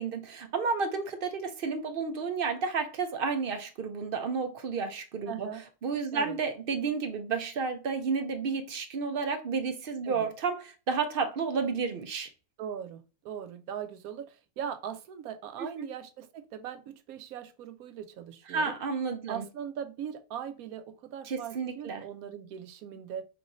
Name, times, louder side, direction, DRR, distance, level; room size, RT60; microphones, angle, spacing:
voice 1, 0.0-5.5 5.8-12.3 18.5-19.4 21.2-22.0, right 5 dB, 55° right, 0.6 m, -31 dB
voice 2, 5.3-5.6 6.1-6.4 10.0-10.3 12.6-18.7 19.3-23.2, right 9 dB, 75° right, 1.0 m, -40 dB
5.5 x 3.0 x 2.6 m
omnidirectional pair, 1.6 m